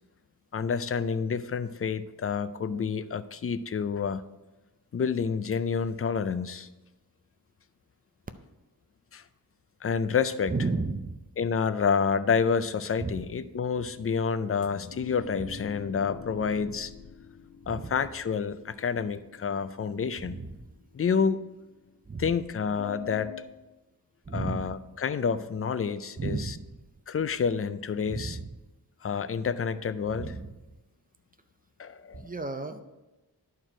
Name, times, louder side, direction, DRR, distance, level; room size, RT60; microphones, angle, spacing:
voice 1, 0.5-4.2 4.9-6.7 9.1-9.2 9.8-10.5 11.4-16.9 17.7-20.4 20.9-21.4 22.2-23.3 24.3-26.5 27.1-28.4 29.0-30.3 31.8-32.2, left 6 dB, 35° left, 13 dB, 0.4 m, -29 dB
voice 2, 10.5-11.2 13.0-13.3 15.4-15.5 17.7-17.9 20.2-20.7 22.1-22.3 24.3-24.8 26.2-26.7 28.1-28.6 30.1-30.5 32.1-32.8, right 3 dB, 25° right, 8 dB, 0.5 m, -33 dB
sound 1, 14.6-21.9 22.7-23.4, left 7 dB, 70° left, 0.7 m, -45 dB
11.0 x 4.5 x 4.9 m, 1.1 s
wide cardioid pair, 125°, 39 cm